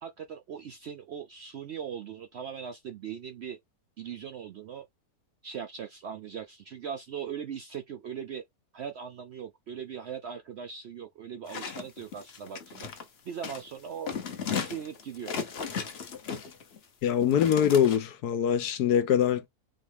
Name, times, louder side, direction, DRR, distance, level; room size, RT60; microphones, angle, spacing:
voice 1, 0.0-3.6 4.0-4.9 5.4-8.4 8.7-12.9 13.2-14.1 14.5-15.3, right 8 dB, 75° right, 0.6 m, -39 dB
sound 1, 11.5-13.0 13.4-13.7 14.1-16.8 17.2-18.0, left 6 dB, 50° left, 0.9 m, -35 dB
voice 2, 17.0-19.5, left 9 dB, 80° left, 1.2 m, -23 dB
4.0 x 3.0 x 3.4 m
omnidirectional pair, 1.7 m